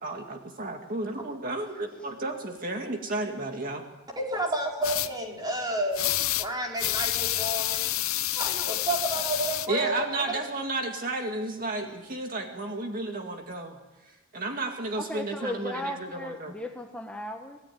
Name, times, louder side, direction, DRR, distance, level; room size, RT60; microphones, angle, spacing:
voice 1, 0.0-3.9 9.7-13.8 14.0-16.5, right 2 dB, 45° right, 3 dB, 2.1 m, -32 dB
voice 2, 4.2-7.9 8.3-10.4, right 1 dB, 20° right, -1 dB, 4.6 m, -31 dB
sound 1, 4.8-5.1 5.9-6.5 6.8-9.7, left 14 dB, 85° left, 0.8 m, -28 dB
voice 3, 15.0-17.6, left 1 dB, 5° left, 2 dB, 1.3 m, -36 dB
26.5 x 18.0 x 9.3 m, 1.1 s
head